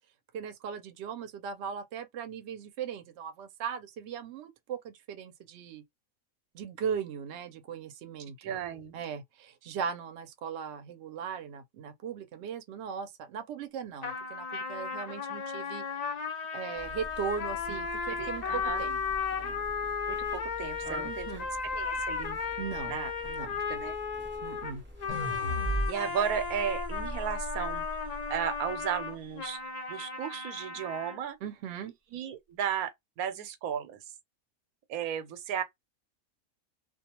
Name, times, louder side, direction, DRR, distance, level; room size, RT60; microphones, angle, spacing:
voice 1, 0.3-5.8 6.5-8.4 8.9-15.8 16.5-19.0 19.4-19.6 21.0-21.5 22.6-22.9 23.2-23.6 24.4-24.8 31.4-31.9, right 7 dB, 65° right, 0.7 m, -38 dB
voice 2, 8.4-9.0 17.7-17.8 18.1-18.9 20.1-22.4 22.9-23.1 23.4-24.0 25.9-27.8 28.3-29.6 29.9-31.4 32.1-34.0 34.9-35.6, right 9 dB, 90° right, 1.1 m, -35 dB
sound 1, 14.0-31.2, left 5 dB, 80° left, 0.3 m, -35 dB
sound 2, 16.7-25.4, left 1 dB, 10° right, 0.7 m, -47 dB
sound 3, 25.1-28.3, right 1 dB, 30° left, 0.7 m, -35 dB
2.4 x 2.2 x 2.8 m
omnidirectional pair, 1.5 m